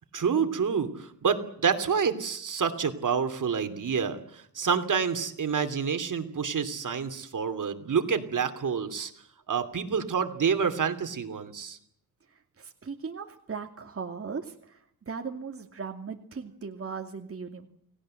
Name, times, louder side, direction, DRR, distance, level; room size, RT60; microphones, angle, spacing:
voice 1, 0.1-9.1 9.5-11.8, right 6 dB, 60° right, 8 dB, 3.0 m, -28 dB
voice 2, 12.6-14.8 15.1-17.7, right 5 dB, 40° right, 4 dB, 2.5 m, -38 dB
29.5 x 19.0 x 7.8 m, 0.68 s
wide cardioid pair, 100°, 35 cm